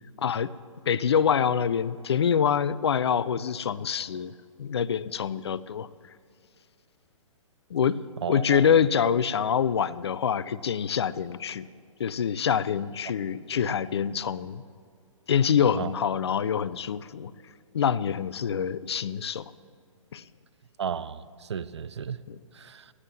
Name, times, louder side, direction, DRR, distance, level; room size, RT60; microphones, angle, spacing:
voice 1, 0.2-0.5 0.9-4.3 4.6-5.9 7.7-8.0 8.3-11.6 12.0-14.6 15.3-17.3 17.7-19.5 20.1-20.2 22.3-22.4, left 7 dB, 55° left, 17 dB, 0.4 m, -25 dB
voice 2, 8.2-8.7 13.5-13.7 15.8-15.9 20.8-22.2 22.5-22.9, right 7 dB, 55° right, 17 dB, 0.5 m, -34 dB
19.5 x 15.0 x 3.1 m, 2.2 s
figure-of-eight pair, 125°, 17 cm